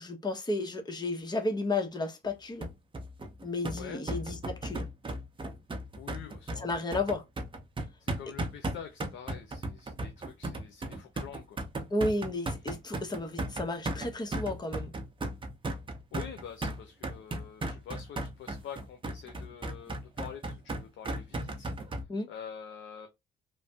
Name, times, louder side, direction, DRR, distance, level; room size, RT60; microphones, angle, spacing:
voice 1, 0.0-2.7 3.4-4.9 6.6-7.2 11.9-14.9 22.1-22.3, left 2 dB, 20° left, 0.8 m, -33 dB
sound 1, 2.6-22.0, right 1 dB, 25° right, 0.7 m, -36 dB
voice 2, 6.0-6.8 8.0-11.6 16.1-21.7 22.3-23.1, left 8 dB, 70° left, 0.6 m, -46 dB
3.2 x 2.1 x 2.7 m
cardioid pair, 90°, 20 cm